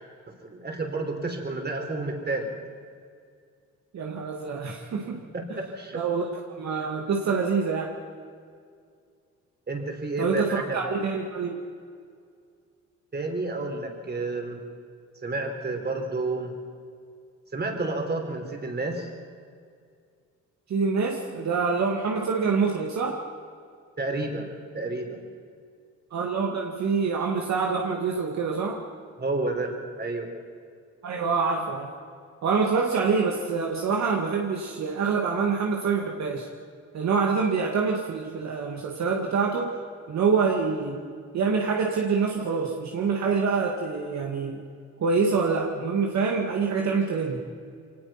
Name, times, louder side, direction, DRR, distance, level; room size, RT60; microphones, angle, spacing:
voice 1, 0.4-2.5 5.3-6.0 9.7-10.8 13.1-14.6 15.2-16.5 17.5-19.1 24.0-25.2 29.2-30.3, right 2 dB, 35° right, 3 dB, 4.5 m, -30 dB
voice 2, 3.9-5.2 5.9-6.2 6.6-7.9 10.2-11.6 20.7-23.2 26.1-28.8 31.0-31.9 32.4-36.5 36.9-39.7 40.1-41.0 41.3-44.6 45.0-47.4, right 5 dB, 65° right, 1 dB, 2.3 m, -26 dB
24.0 x 19.0 x 6.0 m, 2.2 s
cardioid pair, 90°, 30 cm